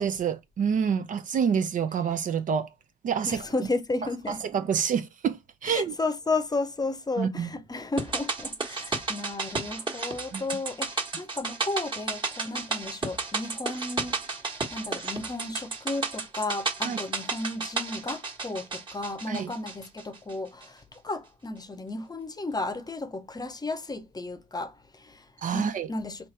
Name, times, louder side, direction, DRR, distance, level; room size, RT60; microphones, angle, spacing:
voice 1, 0.0-2.7 3.0-3.5 4.3-6.0 7.2-7.5 10.3-10.4 16.8-17.0 19.3-19.5 25.4-25.9, right 7 dB, 45° right, 0.6 m, -27 dB
voice 2, 3.3-4.4 5.7-14.2 14.7-25.2 25.5-26.2, left 3 dB, 20° left, 0.8 m, -33 dB
sound 1, 8.0-20.3 20.6-20.7, right 4 dB, 25° right, 1.5 m, -33 dB
4.0 x 3.1 x 3.2 m
hypercardioid pair, 50°, 19 cm